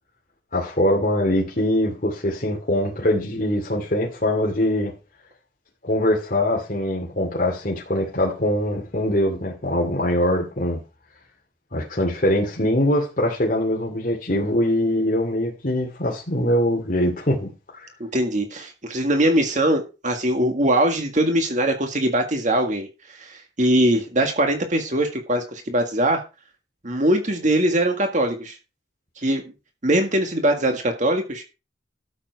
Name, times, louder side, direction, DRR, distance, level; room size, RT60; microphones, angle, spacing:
voice 1, 0.5-4.9 5.8-10.8 11.7-17.9, left 1 dB, 50° left, -1 dB, 2.5 m, -23 dB
voice 2, 18.0-26.2 26.8-28.6 29.2-29.4 29.8-31.4, right 1 dB, 45° right, 4 dB, 1.8 m, -22 dB
12.5 x 7.4 x 4.7 m, 0.30 s
head